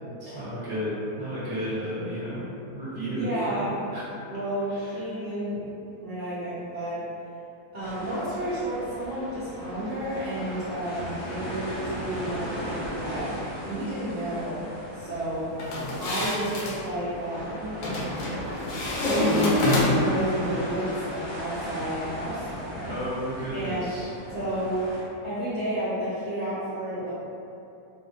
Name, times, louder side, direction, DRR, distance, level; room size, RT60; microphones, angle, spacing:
voice 1, 0.2-2.5 2.7-4.0 4.7-5.0 22.8-24.1, equal, 15° right, -12 dB, 1.1 m, -32 dB
voice 2, 3.1-3.7 4.3-5.6 6.0-7.0 7.7-13.3 13.7-14.7 14.9-15.5 16.0-17.7 19.0-22.9 23.5-23.9 24.3-24.8 25.2-27.1, right 1 dB, 55° right, -13 dB, 1.0 m, -31 dB
sound 1, 7.8-25.0, equal, 45° left, 0.4 m, -36 dB
sound 2, 15.6-16.8 17.8-18.3 18.7-20.2, left 2 dB, 70° left, 0.9 m, -26 dB
3.4 x 2.3 x 2.6 m, 2.7 s
omnidirectional pair, 1.6 m